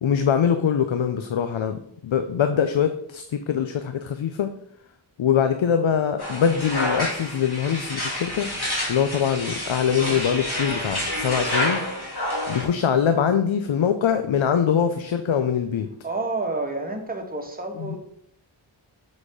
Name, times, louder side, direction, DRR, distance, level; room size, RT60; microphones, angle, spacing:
voice 1, 0.0-4.5 5.2-8.5 8.9-11.9 12.5-15.9 17.8-18.0, left 8 dB, 85° left, 8 dB, 0.6 m, -23 dB
sound 1, 6.2-12.6, left 1 dB, 55° left, 2.6 m, -28 dB
voice 2, 16.0-18.0, right 2 dB, 20° right, 3 dB, 1.3 m, -29 dB
7.4 x 4.2 x 4.9 m, 0.72 s
wide cardioid pair, 55°, 45 cm